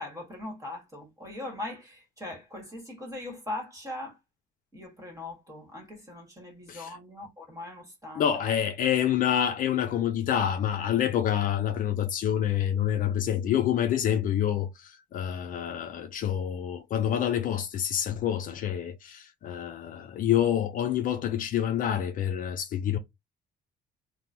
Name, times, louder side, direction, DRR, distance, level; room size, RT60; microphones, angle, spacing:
voice 1, 0.0-4.2 4.7-8.4, left 2 dB, 20° right, 1.5 m, -40 dB
voice 2, 8.2-23.0, left 10 dB, 55° left, 0.4 m, -27 dB
2.9 x 2.2 x 2.6 m
cardioid pair, 110°, 17 cm